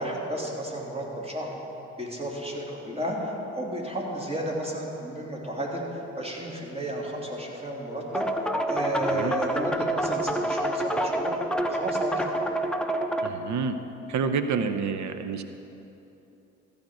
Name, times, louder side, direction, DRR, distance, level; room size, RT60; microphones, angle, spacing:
voice 1, 0.0-1.6 2.0-8.3 8.7-11.3 11.7-12.3, right 1 dB, 15° right, -2 dB, 2.8 m, -32 dB
sound 1, 8.1-13.3, right 1 dB, 5° left, 0.9 m, -27 dB
voice 2, 13.2-13.8 14.1-15.4, right 5 dB, 55° right, 9 dB, 0.8 m, -28 dB
14.0 x 5.3 x 7.6 m, 2.9 s
hypercardioid pair, 50°, 35 cm